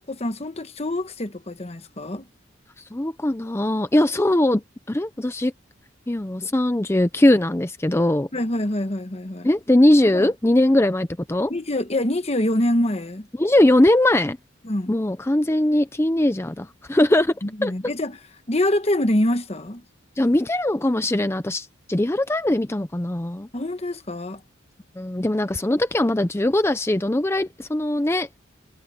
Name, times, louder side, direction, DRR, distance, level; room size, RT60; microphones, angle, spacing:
voice 1, 0.0-2.3 8.3-9.5 10.0-10.3 11.5-13.3 14.6-14.9 17.4-18.2 18.5-19.8 23.5-24.4, left 1 dB, 30° left, 1.2 m, -25 dB
voice 2, 2.9-4.6 4.9-5.5 6.1-8.3 9.4-11.5 13.3-14.4 14.9-17.3 17.6-17.7 20.2-23.5 25.0-28.3, left 1 dB, 15° left, 0.6 m, -20 dB
head